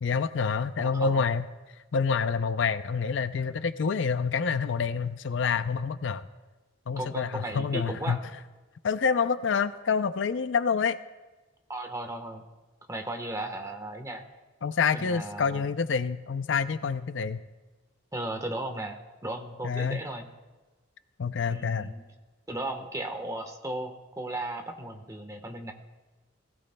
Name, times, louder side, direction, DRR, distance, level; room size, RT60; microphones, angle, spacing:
voice 1, 0.0-1.4 1.9-6.2 6.9-8.2 8.8-11.0 14.6-17.4 19.6-20.0 21.2-21.9, left 5 dB, 70° left, 12 dB, 0.5 m, -27 dB
voice 2, 0.8-1.3 7.0-8.2 11.7-12.4 12.9-14.2 14.9-15.7 18.1-20.3 21.5-22.0 22.5-25.7, right 1 dB, 15° right, 5 dB, 1.2 m, -36 dB
19.0 x 16.5 x 2.2 m, 1.2 s
head